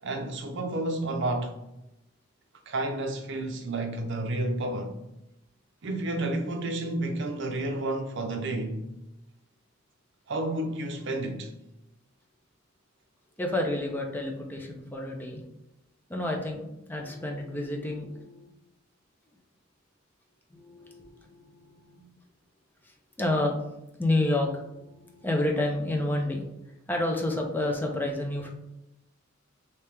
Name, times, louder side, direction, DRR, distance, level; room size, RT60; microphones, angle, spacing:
voice 1, 0.0-1.5 2.7-5.0 5.8-8.9 10.3-11.5, right 2 dB, 60° right, 0.6 m, -31 dB
voice 2, 13.4-15.4 16.1-18.5 20.5-22.1 22.8-23.6 24.0-26.4 26.9-28.5, left 1 dB, 10° left, 0.5 m, -30 dB
3.4 x 2.8 x 3.3 m
head